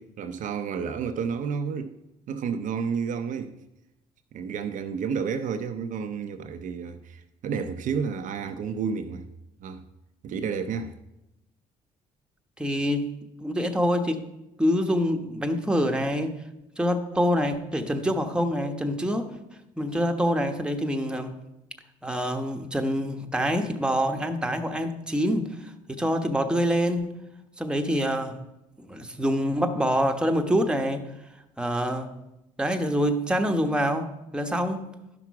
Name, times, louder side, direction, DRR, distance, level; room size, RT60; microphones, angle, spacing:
voice 1, 0.0-1.9 2.3-3.5 4.3-9.3 9.6-9.8 10.2-11.0, right 6 dB, 65° right, 0.7 m, -31 dB
voice 2, 12.6-13.1 13.4-14.2 14.6-16.4 16.8-19.3 19.8-21.4 22.0-27.2 27.6-28.4 28.8-31.1 31.6-32.2 32.6-34.9, equal, 5° right, 1.2 m, -26 dB
11.5 x 6.0 x 4.8 m
supercardioid pair, 70°, 14 cm